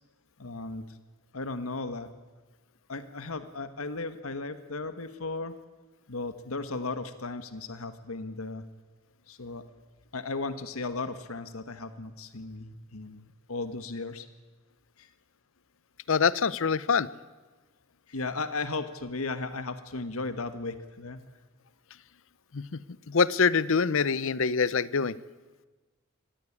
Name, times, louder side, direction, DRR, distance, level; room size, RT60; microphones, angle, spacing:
voice 1, 0.4-1.0 1.3-2.1 2.9-5.5 6.1-8.6 9.3-9.6 10.1-13.2 13.5-14.3 15.0-15.1 18.1-21.2, left 3 dB, 85° left, 11 dB, 1.5 m, -35 dB
voice 2, 16.1-17.1 22.5-22.8 23.1-25.1, left 5 dB, 65° left, 19 dB, 0.7 m, -25 dB
23.5 x 18.0 x 9.8 m, 1.3 s
head